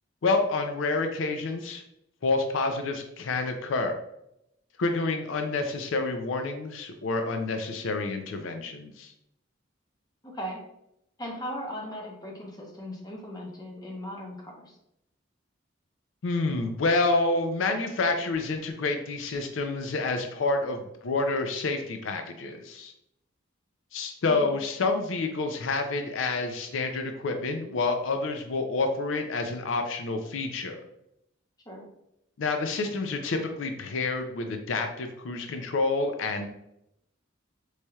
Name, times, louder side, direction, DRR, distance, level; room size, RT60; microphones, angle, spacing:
voice 1, 0.2-1.8 2.2-4.0 4.8-9.1 16.2-22.9 23.9-30.8 32.4-36.5, left 3 dB, 85° left, 5 dB, 0.5 m, -28 dB
voice 2, 10.2-10.6 11.2-14.7 24.3-24.6 31.7-31.9, equal, 20° left, -1 dB, 0.7 m, -38 dB
4.1 x 3.2 x 2.3 m, 0.80 s
head